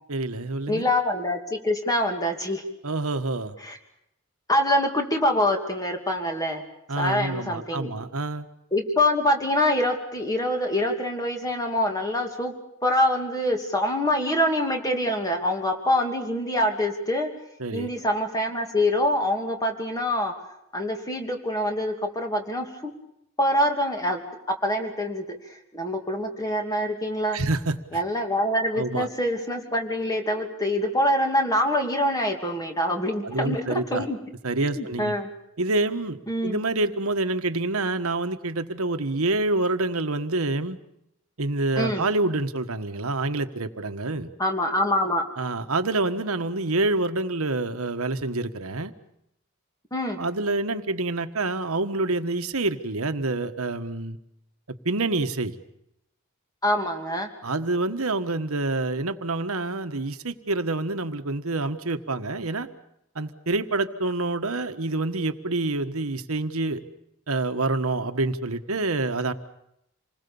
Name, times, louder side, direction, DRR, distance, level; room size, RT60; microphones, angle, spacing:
voice 1, 0.1-0.9 2.8-3.6 6.9-8.5 17.6-17.9 27.3-28.0 28.7-29.1 33.2-34.1 34.4-35.1 35.6-40.8 41.4-44.3 45.4-48.9 50.2-54.2 54.7-55.5 57.4-62.7 63.1-66.8 67.3-69.3, right 2 dB, 85° right, 9 dB, 1.4 m, -27 dB
voice 2, 0.7-2.6 3.6-3.8 4.5-6.6 7.0-7.9 8.7-12.5 12.8-17.3 17.7-20.3 20.7-22.9 23.4-24.2 24.6-25.4 25.7-27.4 27.9-34.2 34.8-35.3 36.3-36.6 41.8-42.0 44.4-45.2 49.9-50.2 56.6-57.3, left 1 dB, 15° left, 3 dB, 2.8 m, -25 dB
27.5 x 20.5 x 7.1 m, 0.80 s
head